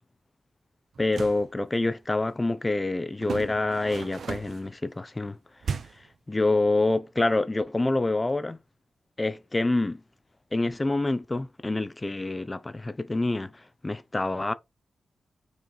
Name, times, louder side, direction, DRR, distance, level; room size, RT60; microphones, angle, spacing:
sound 1, 0.9-1.5 3.2-4.7 5.6-6.1, right 6 dB, 60° right, 0.6 m, -35 dB
voice 1, 1.0-5.4 6.3-8.6 9.2-10.0 10.5-14.5, left 2 dB, 15° left, 0.6 m, -27 dB
5.5 x 4.5 x 3.9 m
wide cardioid pair, 175°, 0 cm